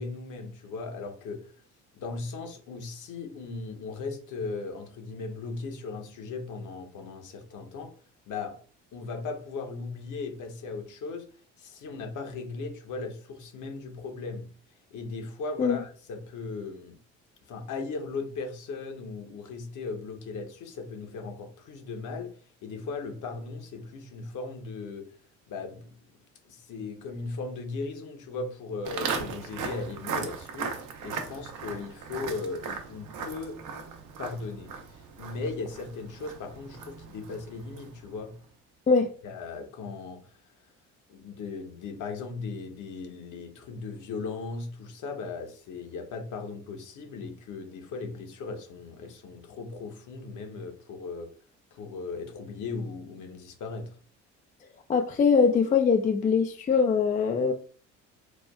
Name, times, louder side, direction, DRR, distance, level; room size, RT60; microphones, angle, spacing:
voice 1, 0.0-1.5 1.9-7.9 8.3-8.6 8.9-11.3 11.6-14.5 14.9-17.0 17.5-22.3 22.6-25.1 25.5-26.0 26.5-30.7 31.0-33.6 34.2-38.4 39.2-40.3 41.1-51.3 51.7-54.0, left 4 dB, 55° left, 0.9 m, -37 dB
Walk footsteps, 28.8-38.1, right 5 dB, 60° right, 0.8 m, -37 dB
voice 2, 54.9-57.5, left 5 dB, 25° left, 0.3 m, -22 dB
4.4 x 2.2 x 2.3 m
hypercardioid pair, 65°, 36 cm